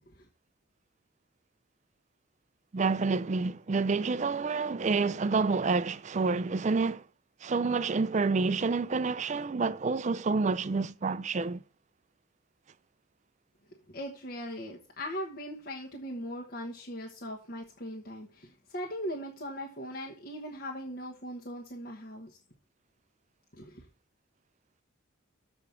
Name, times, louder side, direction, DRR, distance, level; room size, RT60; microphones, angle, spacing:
voice 1, 2.7-7.0 7.4-11.6, right 4 dB, 35° right, 0.4 m, -28 dB
voice 2, 13.9-22.4 23.5-23.9, equal, 45° left, 1.2 m, -39 dB
7.3 x 4.9 x 6.9 m
head